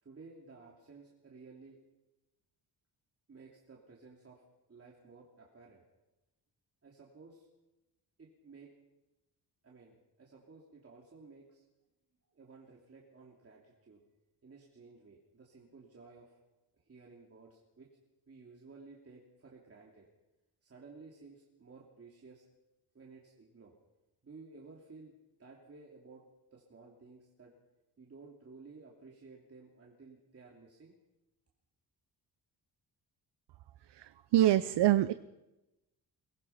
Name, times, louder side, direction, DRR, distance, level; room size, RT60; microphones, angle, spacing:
voice 1, 0.0-1.8 3.3-5.8 6.8-7.5 8.2-8.7 9.6-11.7 12.3-14.0 14.4-16.4 16.8-17.9 18.3-20.1 20.6-22.4 22.9-23.7 24.2-25.1 25.4-26.2 26.5-27.5 28.0-30.9, right 4 dB, 35° right, -2 dB, 2.9 m, -55 dB
voice 2, 33.9-35.1, right 13 dB, 75° right, 14 dB, 0.7 m, -26 dB
23.5 x 19.5 x 5.8 m, 0.99 s
wide cardioid pair, 145°, 42 cm